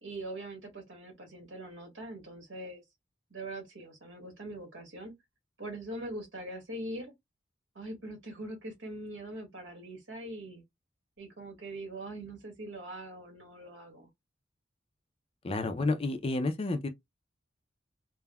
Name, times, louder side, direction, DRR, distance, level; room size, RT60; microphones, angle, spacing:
voice 1, 0.0-2.8 3.3-5.1 5.6-7.1 7.7-10.6 11.2-14.1, right 1 dB, 85° right, 1.4 m, -42 dB
voice 2, 15.4-16.9, left 2 dB, 30° left, 0.4 m, -30 dB
3.4 x 2.1 x 2.2 m
head